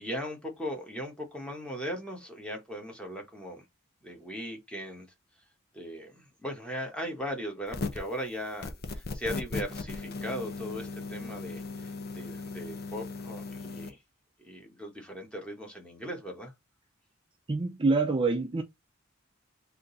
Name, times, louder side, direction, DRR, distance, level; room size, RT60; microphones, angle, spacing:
voice 1, 0.0-3.6 4.0-5.1 5.7-14.0 14.4-16.5, equal, 5° left, 1.3 m, -38 dB
sound 1, 7.7-8.1 8.6-13.9, left 3 dB, 55° left, 0.7 m, -37 dB
voice 2, 17.5-18.6, right 3 dB, 25° right, 0.5 m, -26 dB
3.8 x 2.8 x 3.9 m
head